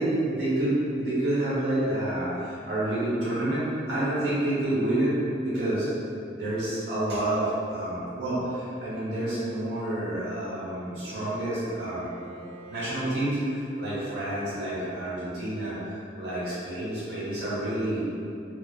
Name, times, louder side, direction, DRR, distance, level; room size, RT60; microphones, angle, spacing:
voice 1, 0.0-5.2 5.4-5.9 6.3-12.2 12.7-18.1, right 1 dB, 70° right, -9 dB, 0.9 m, -28 dB
Bowed string instrument, 10.0-13.2, right 2 dB, 45° right, 0.4 m, -48 dB
2.4 x 2.4 x 2.3 m, 2.6 s
head